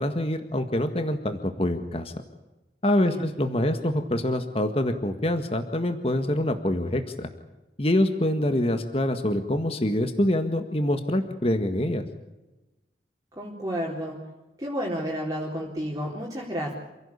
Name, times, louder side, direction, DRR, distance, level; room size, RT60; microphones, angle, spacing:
voice 1, 0.0-2.1 2.8-7.3 7.8-12.0, left 1 dB, 35° left, 7 dB, 1.8 m, -25 dB
voice 2, 3.0-3.3 13.3-14.2 14.6-16.7, equal, 20° right, -3 dB, 3.9 m, -31 dB
28.0 x 17.0 x 8.6 m, 1.0 s
head